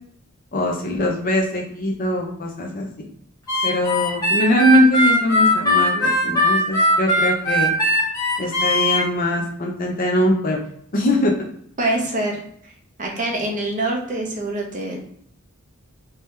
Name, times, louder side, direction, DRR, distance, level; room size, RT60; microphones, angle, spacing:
voice 1, 0.5-3.1 3.6-7.7 8.4-10.6 10.9-11.3, left 1 dB, 40° left, 0 dB, 0.7 m, -21 dB
Harmonica, 3.5-9.0, equal, 15° left, 1.3 m, -19 dB
voice 2, 11.8-12.4 13.0-15.0, right 2 dB, 35° right, 0 dB, 0.9 m, -24 dB
3.5 x 2.9 x 3.2 m, 0.67 s
head